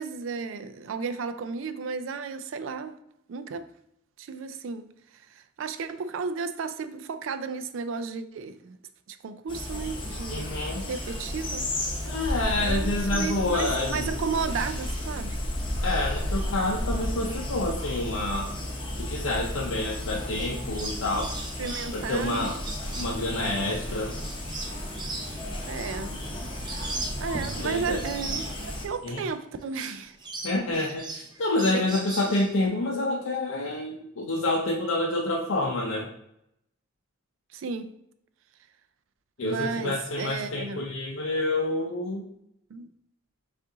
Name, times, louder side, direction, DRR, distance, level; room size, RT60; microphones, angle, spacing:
voice 1, 0.0-3.0 3.3-3.7 4.2-4.9 5.3-8.8 9.1-11.6 12.6-15.4 21.6-22.5 25.6-26.2 26.6-26.9 27.2-30.2 30.7-31.0 31.7-31.9 37.5-37.9 39.4-40.9 42.7-42.9, right 5 dB, 80° right, 0.4 m, -33 dB
sound 1, 9.5-28.9, left 1 dB, 25° left, 0.7 m, -34 dB
voice 2, 10.3-10.8 12.0-14.1 15.8-18.6 19.0-21.4 21.9-22.6 23.0-24.1 27.6-28.0 29.0-29.2 30.4-36.1 39.4-42.3, left 2 dB, 90° left, 0.6 m, -28 dB
sound 2, 12.2-18.3, equal, 70° left, 1.2 m, -33 dB
sound 3, 20.4-29.3 29.6-32.7, right 3 dB, 20° right, 0.5 m, -39 dB
5.3 x 2.5 x 3.7 m
head